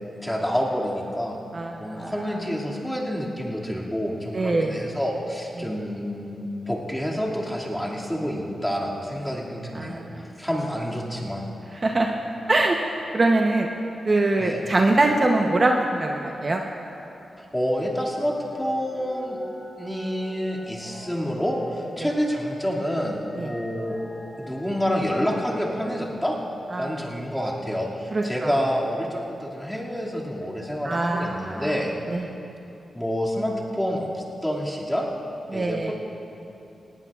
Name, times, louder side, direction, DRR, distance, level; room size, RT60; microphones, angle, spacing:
voice 1, 0.2-1.4 1.8-10.0 10.4-11.4 14.4-14.6 17.4-19.4 19.8-24.0 24.4-26.4 26.8-31.9 32.9-34.1 34.4-35.1 35.5-35.9, equal, 5° left, -4 dB, 2.3 m, -28 dB
voice 2, 1.5-2.3 4.3-4.7 5.6-5.7 9.7-10.3 11.7-12.1 12.5-13.7 14.1-16.6 22.0-22.1 23.4-23.5 26.7-27.1 28.1-28.5 30.8-31.8 32.1-32.3 35.5-35.9, right 2 dB, 35° right, 1 dB, 0.8 m, -23 dB
sound 1, 18.5-25.8, equal, 60° left, 3.3 m, -44 dB
18.5 x 18.0 x 2.4 m, 2.9 s
wide cardioid pair, 95°, 0 cm